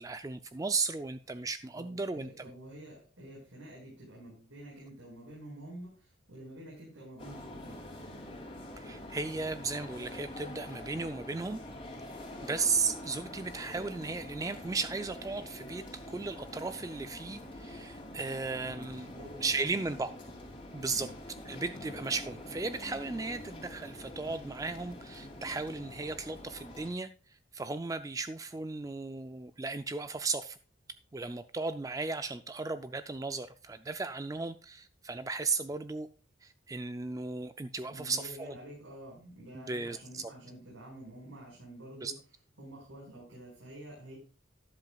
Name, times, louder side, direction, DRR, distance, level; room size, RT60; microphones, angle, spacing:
voice 1, 0.0-2.4 8.8-11.6 12.4-19.1 19.4-20.1 20.7-21.1 21.5-27.1 27.5-30.6 31.1-36.1 36.4-38.6 39.5-40.3 42.0-42.1, right 4 dB, 15° right, 11 dB, 0.3 m, -35 dB
voice 2, 1.7-7.8 18.6-19.9 20.9-21.1 37.9-42.2 42.6-44.2, right 1 dB, 90° right, -4 dB, 5.0 m, -48 dB
sound 1, 7.2-26.9, left 1 dB, 25° left, 2.7 m, -46 dB
12.5 x 11.0 x 2.3 m, 0.37 s
head